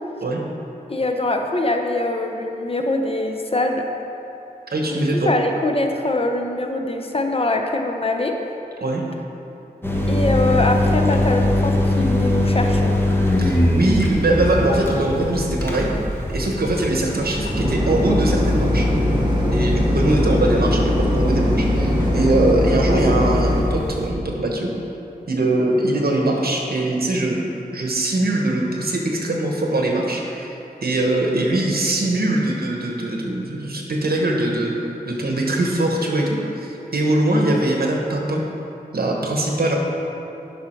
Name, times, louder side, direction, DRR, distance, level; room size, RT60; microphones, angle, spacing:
voice 1, 0.9-3.8 5.2-8.4 10.1-13.0, left 2 dB, 35° left, 3 dB, 0.7 m, -23 dB
voice 2, 4.7-5.3 8.8-9.0 13.4-15.9 16.3-18.9 19.5-24.7 25.3-27.4 27.7-38.4 38.9-39.8, right 1 dB, 70° right, 0 dB, 1.2 m, -22 dB
sound 1, 9.8-24.1, left 1 dB, 15° left, 1.1 m, -23 dB
sound 2, 17.5-23.6, left 1 dB, 30° right, 1.4 m, -20 dB
10.5 x 5.6 x 4.5 m, 3.0 s
wide cardioid pair, 90°, 16 cm